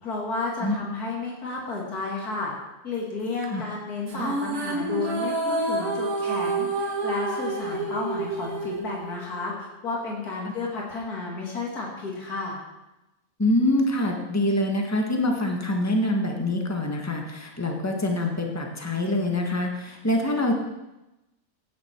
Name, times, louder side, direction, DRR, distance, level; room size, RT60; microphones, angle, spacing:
voice 1, 0.0-2.5 2.8-12.6, left 3 dB, 90° left, -2 dB, 3.0 m, -32 dB
sound 1, 4.1-9.6, right 2 dB, 80° right, 2.0 m, -28 dB
voice 2, 13.4-20.6, left 1 dB, 10° left, 1 dB, 1.6 m, -25 dB
16.0 x 10.5 x 4.6 m, 0.98 s
omnidirectional pair, 1.6 m